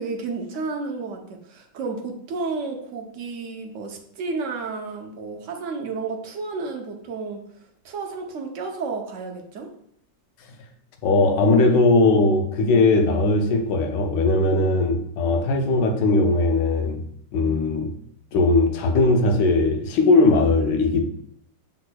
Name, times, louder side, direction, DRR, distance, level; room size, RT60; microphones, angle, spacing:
voice 1, 0.0-7.4 7.8-9.7, right 4 dB, 65° right, 0.8 m, -31 dB
voice 2, 11.0-17.0 17.3-17.9 18.3-21.0, left 2 dB, 80° left, 1.3 m, -19 dB
6.0 x 3.7 x 2.2 m
omnidirectional pair, 1.9 m